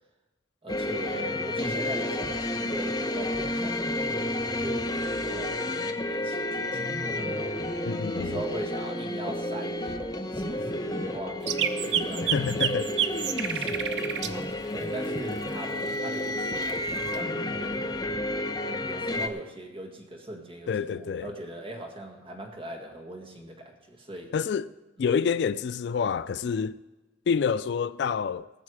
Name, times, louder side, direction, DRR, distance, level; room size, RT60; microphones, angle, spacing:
voice 1, 0.6-4.0 4.6-7.6 8.1-12.6 13.4-18.1 18.8-24.3, right 1 dB, 30° right, 1.8 m, -40 dB
sound 1, 0.7-19.3, left 1 dB, 20° left, 0.7 m, -31 dB
voice 2, 7.9-8.4 12.2-12.9 20.7-21.3 24.3-24.7 25.0-26.8 27.3-28.5, left 6 dB, 65° left, 0.3 m, -27 dB
sound 2, 11.5-14.3 16.7-17.2, right 9 dB, 70° right, 0.7 m, -28 dB
19.0 x 7.2 x 4.8 m
head